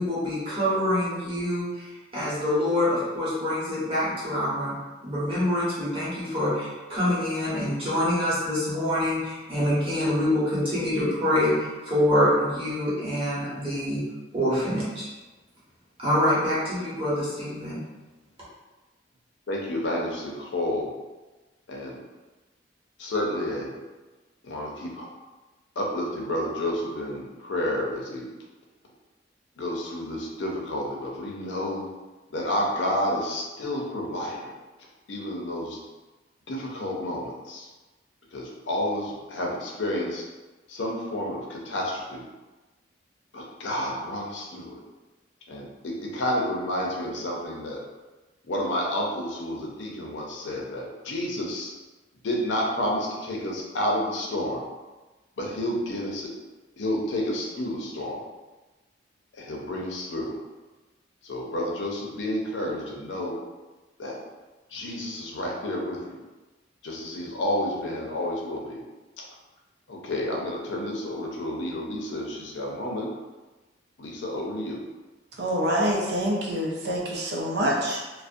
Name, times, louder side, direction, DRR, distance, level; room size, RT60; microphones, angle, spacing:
voice 1, 0.0-4.7 5.0-14.0 14.3-15.1 16.0-17.8, left 1 dB, 30° right, -9 dB, 1.0 m, -25 dB
voice 2, 19.5-20.9 21.7-22.0 23.0-23.8 24.4-25.1 25.8-28.3 29.6-31.9 32.3-34.5 35.1-35.8 36.5-37.7 38.3-40.2 40.7-42.3 43.3-44.8 45.5-47.8 48.5-51.7 52.2-54.6 55.4-56.3 56.8-58.2 59.3-60.3 61.2-63.4 64.0-64.2 64.7-66.2 66.8-68.8 69.2-69.3 69.9-73.1 74.0-74.8, left 1 dB, 80° left, -1 dB, 0.5 m, -30 dB
voice 3, 75.4-78.2, equal, 65° right, -2 dB, 0.5 m, -26 dB
2.4 x 2.0 x 2.5 m, 1.2 s
head